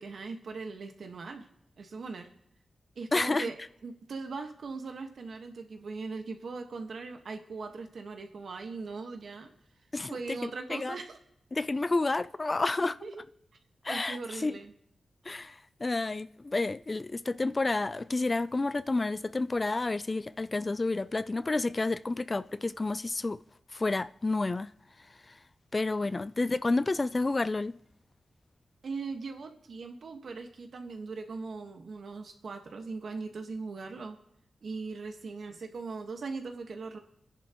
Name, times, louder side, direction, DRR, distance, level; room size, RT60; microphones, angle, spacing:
voice 1, 0.0-1.5 1.8-2.3 2.9-9.5 10.1-11.2 12.8-13.2 13.9-14.7 26.0-26.1 28.8-34.2 34.6-37.0, right 4 dB, 70° right, 1.5 m, -40 dB
voice 2, 3.1-3.5 9.9-10.2 10.4-10.9 11.5-13.0 13.8-14.5 15.3-23.4 23.7-24.7 25.7-27.7, left 3 dB, 30° left, 0.4 m, -30 dB
28.5 x 10.5 x 3.1 m
cardioid pair, 75°, 0 cm